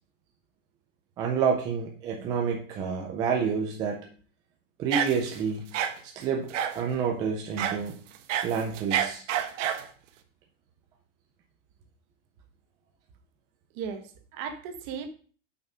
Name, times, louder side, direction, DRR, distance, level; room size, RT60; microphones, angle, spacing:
voice 1, 1.2-4.0 4.8-5.7 6.0-7.9 8.4-9.2, right 6 dB, 10° right, 1 dB, 0.3 m, -29 dB
sound 1, 4.9-5.4 5.7-5.9 6.5-6.8 7.6-7.8 8.1-9.9, right 9 dB, 75° right, 1.2 m, -28 dB
voice 2, 13.7-15.1, right 6 dB, 40° right, 8 dB, 1.2 m, -36 dB
7.3 x 5.7 x 5.4 m, 0.42 s
supercardioid pair, 170°, 37 cm